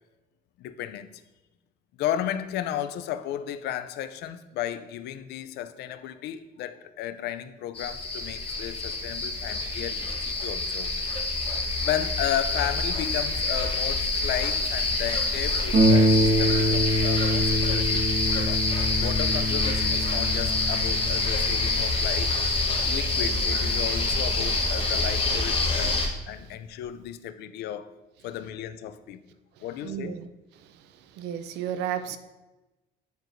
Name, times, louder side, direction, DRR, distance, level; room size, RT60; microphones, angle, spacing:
voice 1, 0.6-1.1 2.0-10.9 11.8-18.7 19.0-22.3 22.8-26.0 26.3-27.9 28.2-29.2 29.6-30.2, left 11 dB, 75° left, 0.5 m, -34 dB
sound 1, 7.7-26.1, left 3 dB, 30° left, 1.2 m, -26 dB
Harp, 15.7-24.9 25.7-25.8 26.3-26.4, equal, 50° right, 1.4 m, -26 dB
voice 2, 29.8-30.3 30.6-30.8 31.1-32.2, right 9 dB, 85° right, 0.5 m, -33 dB
9.3 x 4.6 x 2.6 m
cardioid pair, 110°, 17 cm